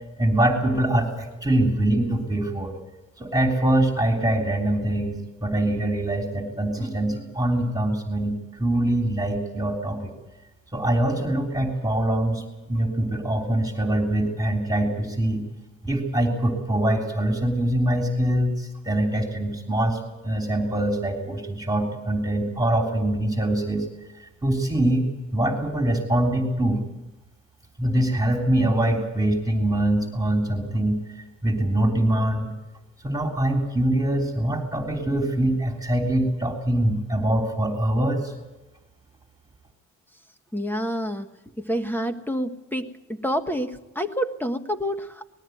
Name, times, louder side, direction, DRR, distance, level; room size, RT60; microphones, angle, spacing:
voice 1, 0.2-2.7 3.2-10.1 10.7-15.4 15.8-23.8 24.2-25.0 25.3-26.8 27.8-32.5 33.0-38.3, right 1 dB, 10° right, 1 dB, 3.4 m, -24 dB
voice 2, 40.5-41.3 41.6-45.2, equal, 5° left, 8 dB, 1.5 m, -28 dB
20.5 x 14.0 x 9.3 m, 1.1 s
cardioid pair, 90°, 30 cm